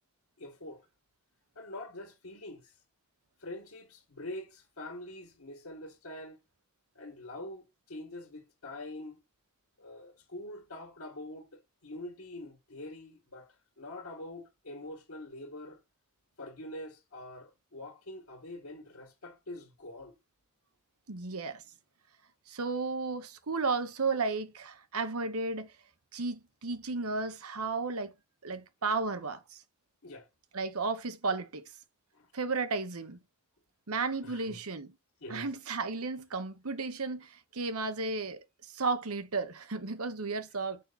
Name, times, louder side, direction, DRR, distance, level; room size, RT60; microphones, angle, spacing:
voice 1, 0.4-0.9 1.6-2.8 3.4-6.4 7.0-9.2 9.8-15.8 16.4-20.2 30.0-30.3 32.1-32.3 34.2-34.6 35.2-35.5, left 1 dB, 75° left, 1.8 m, -45 dB
voice 2, 21.1-21.6 22.5-25.7 26.1-28.1 28.4-29.6 30.5-31.6 32.3-33.2 33.9-34.9 35.3-40.8, right 4 dB, 85° right, 1.1 m, -33 dB
6.6 x 5.6 x 4.1 m
head